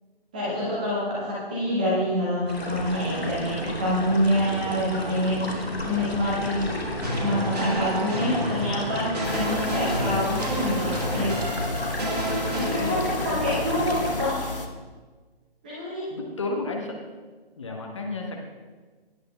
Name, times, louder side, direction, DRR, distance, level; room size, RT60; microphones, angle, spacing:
voice 1, 0.3-5.5 5.8-6.9 7.2-11.4 12.2-14.5 15.6-16.1, equal, 10° right, -7 dB, 0.9 m, -26 dB
sound 1, 2.5-14.3, left 1 dB, 75° left, 2.3 m, -33 dB
sound 2, 7.0-12.7, right 1 dB, 40° right, 1.7 m, -30 dB
sound 3, 9.2-14.7, left 3 dB, 60° left, 1.2 m, -33 dB
voice 2, 12.6-14.0 16.1-17.0 17.6-18.4, left 2 dB, 30° left, 1 dB, 1.1 m, -32 dB
18.0 x 9.3 x 2.3 m, 1.4 s
figure-of-eight pair, 155°, 31 cm